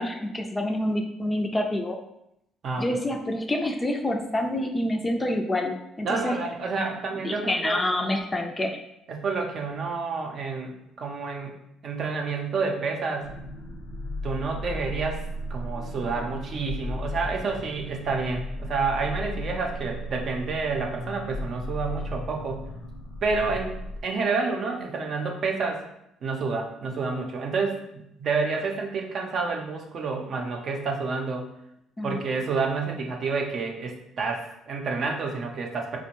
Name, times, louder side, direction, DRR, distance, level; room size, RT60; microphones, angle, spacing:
voice 1, 0.0-2.0 2.8-6.4 7.2-8.8 32.0-32.2, left 1 dB, 20° left, 4 dB, 0.4 m, -27 dB
voice 2, 6.0-7.8 9.1-10.7 11.0-11.6 11.8-13.3 14.2-22.6 23.2-23.7 24.0-25.8 26.2-31.5 32.0-36.0, right 4 dB, 55° right, 2 dB, 0.6 m, -29 dB
sound 1, 13.2-24.0, left 1 dB, 75° left, 0.7 m, -35 dB
4.3 x 2.2 x 2.9 m, 0.81 s
supercardioid pair, 85°, 0 cm